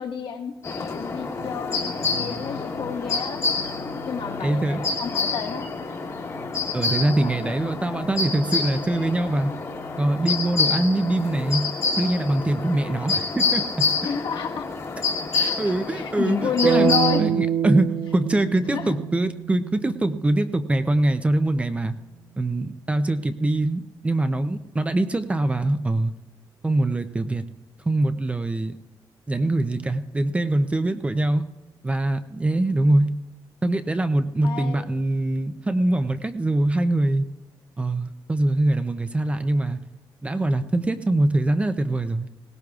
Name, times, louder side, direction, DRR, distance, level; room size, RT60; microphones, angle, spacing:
voice 1, 0.0-3.4 4.0-5.7 7.1-7.5 14.0-14.7 15.3-17.3 18.7-19.0 34.4-34.9, left 6 dB, 80° left, 1 dB, 1.4 m, -30 dB
sound 1, 0.6-17.2, left 4 dB, 35° left, 1.3 m, -28 dB
voice 2, 4.4-4.8 6.7-9.5 10.0-11.7 12.0-13.6 15.6-16.9 17.2-21.9 22.4-26.1 26.6-27.4 27.9-28.8 29.3-31.4 31.8-33.1 33.6-37.3 37.8-39.8 40.2-42.3, right 2 dB, 15° right, 9 dB, 0.5 m, -23 dB
sound 2, 16.6-20.7, right 10 dB, 60° right, 0.7 m, -26 dB
20.0 x 18.0 x 2.4 m, 0.99 s
wide cardioid pair, 175°, 8 cm